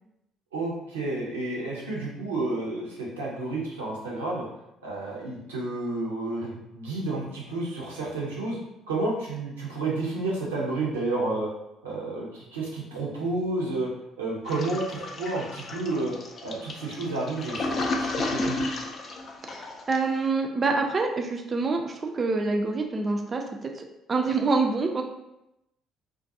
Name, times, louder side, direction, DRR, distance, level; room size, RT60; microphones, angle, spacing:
voice 1, 0.5-4.5 4.8-8.6 8.9-11.5 11.8-13.9 14.2-16.1 16.4-18.6, right 2 dB, 85° right, -4 dB, 0.6 m, -30 dB
Toilet flush, 14.5-20.2, left 2 dB, 45° left, 0.4 m, -32 dB
voice 2, 19.4-25.0, right 3 dB, 35° right, 3 dB, 0.4 m, -26 dB
2.4 x 2.2 x 2.6 m, 0.88 s
hypercardioid pair, 50°, 0 cm